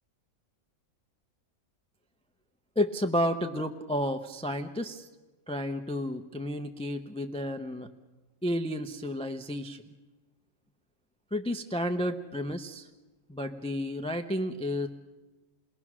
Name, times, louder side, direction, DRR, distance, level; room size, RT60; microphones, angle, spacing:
voice 1, 2.8-5.1 5.5-7.9 8.4-9.8 11.3-12.9 13.3-14.9, equal, 5° left, 6 dB, 0.6 m, -31 dB
29.0 x 20.0 x 6.2 m, 1.2 s
omnidirectional pair, 1.6 m